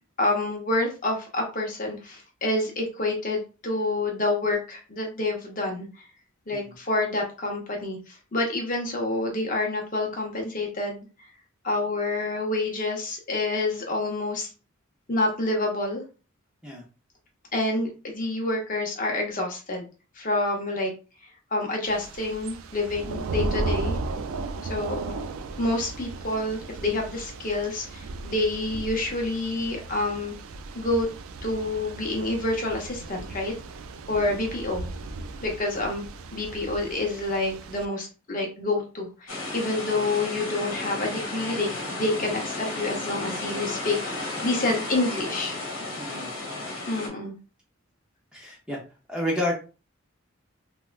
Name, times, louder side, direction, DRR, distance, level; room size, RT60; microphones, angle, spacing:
voice 1, 0.2-6.0 6.5-11.0 11.6-14.5 15.1-16.0 17.5-19.9 20.2-20.9 21.5-24.0 24.7-25.2 25.6-30.3 30.7-31.1 31.4-33.5 34.1-34.9 35.4-41.7 41.9-45.6 46.9-47.3, left 2 dB, 40° left, 1 dB, 0.7 m, -28 dB
Thunder / Rain, 21.8-37.9, right 3 dB, 85° right, 0.3 m, -35 dB
sound 1, 39.3-47.1, left 2 dB, 70° left, 1.1 m, -33 dB
voice 2, 46.0-46.3 48.3-48.8 49.1-49.5, left 1 dB, 5° right, -3 dB, 0.6 m, -30 dB
3.3 x 2.2 x 2.4 m, 0.33 s
head